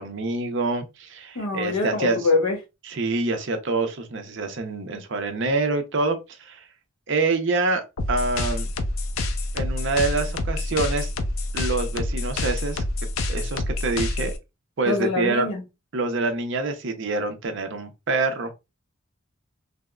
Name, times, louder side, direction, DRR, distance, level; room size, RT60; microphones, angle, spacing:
voice 1, 0.0-2.2 2.9-6.7 7.1-7.8 8.1-8.7 9.5-11.1 11.5-12.8 13.3-14.3 14.8-15.5 15.9-18.5, right 3 dB, 55° right, 0.6 m, -26 dB
voice 2, 1.3-2.6 14.8-15.6, left 3 dB, 90° left, 1.0 m, -24 dB
sound 1, 8.0-14.4, left 2 dB, 75° left, 0.5 m, -27 dB
3.5 x 2.0 x 2.2 m
head